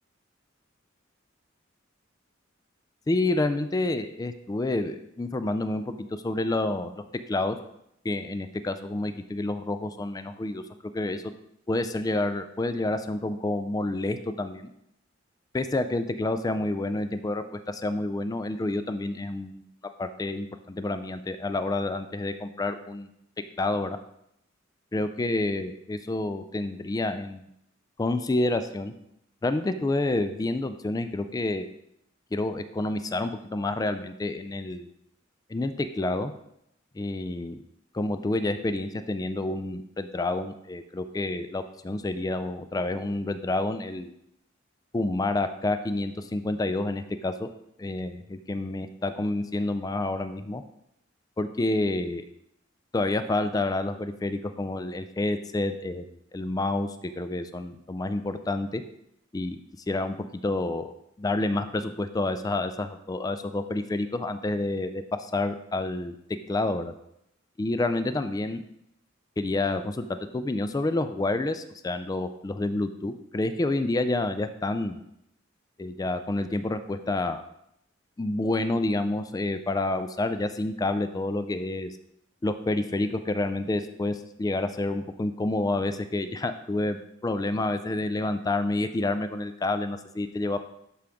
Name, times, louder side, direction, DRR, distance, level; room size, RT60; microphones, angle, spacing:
voice 1, 3.1-5.8 6.2-7.6 8.0-10.6 10.9-11.2 11.7-14.7 15.5-19.6 20.0-23.1 23.6-24.0 24.9-27.5 28.0-28.9 29.4-31.7 32.3-34.9 35.5-36.3 36.9-37.6 37.9-44.1 44.9-47.5 47.8-50.6 51.4-52.2 52.9-56.0 56.3-56.9 57.2-58.8 59.3-59.6 59.9-60.2 60.4-60.9 61.2-66.9 67.6-68.6 69.4-70.1 70.3-75.0 75.8-77.4 78.2-81.9 82.4-90.6, left 2 dB, 20° left, 10 dB, 0.3 m, -28 dB
11.0 x 3.8 x 3.5 m, 0.77 s
head